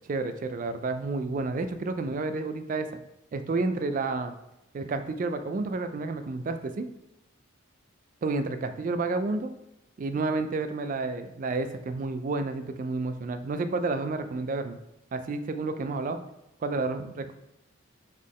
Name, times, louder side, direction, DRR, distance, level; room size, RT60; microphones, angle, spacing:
voice 1, 0.1-2.9 3.3-4.3 4.7-6.9 8.2-9.5 10.0-14.8 15.1-16.2 16.6-17.3, right 3 dB, 40° right, 9 dB, 0.3 m, -30 dB
4.1 x 3.6 x 3.1 m, 0.90 s
head